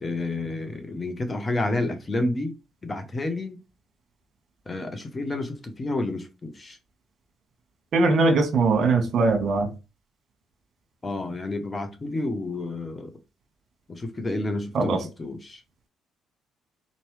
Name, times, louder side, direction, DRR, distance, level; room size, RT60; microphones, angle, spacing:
voice 1, 0.0-2.6 2.8-3.6 4.7-6.8 11.0-13.1 13.9-15.6, left 2 dB, 30° left, 0.9 m, -30 dB
voice 2, 7.9-9.7 14.7-15.0, right 3 dB, 60° right, 1.3 m, -21 dB
4.2 x 3.0 x 3.1 m
supercardioid pair, 60°, 0 cm